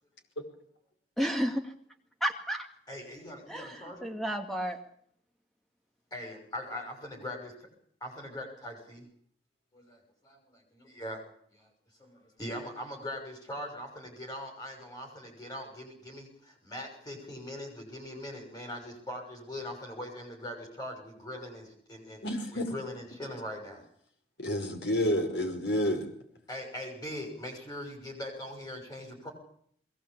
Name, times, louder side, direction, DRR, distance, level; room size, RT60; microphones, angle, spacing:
voice 1, 1.2-1.7 2.2-2.7 3.5-4.8, equal, ahead, 4 dB, 2.3 m, -32 dB
voice 2, 2.9-4.1 6.1-7.7 8.0-9.0 9.7-11.2 11.5-11.7 12.0-22.2 22.5-23.8 26.5-29.3, left 1 dB, 20° left, 2 dB, 6.2 m, -41 dB
voice 3, 22.2-22.7 24.4-26.1, left 1 dB, 70° left, 4 dB, 5.3 m, -29 dB
21.5 x 18.0 x 8.5 m, 0.64 s
head